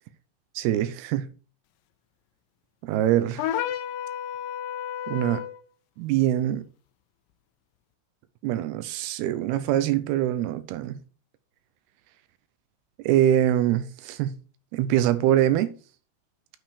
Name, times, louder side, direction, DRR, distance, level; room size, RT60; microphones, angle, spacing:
voice 1, 0.6-1.3 2.8-3.5 5.1-5.4 6.0-6.7 8.4-11.0 13.0-14.3 14.7-15.7, right 12 dB, 80° right, 2.6 m, -24 dB
sound 1, 3.4-5.6, left 10 dB, 90° left, 2.0 m, -31 dB
9.0 x 5.2 x 4.9 m
omnidirectional pair, 4.8 m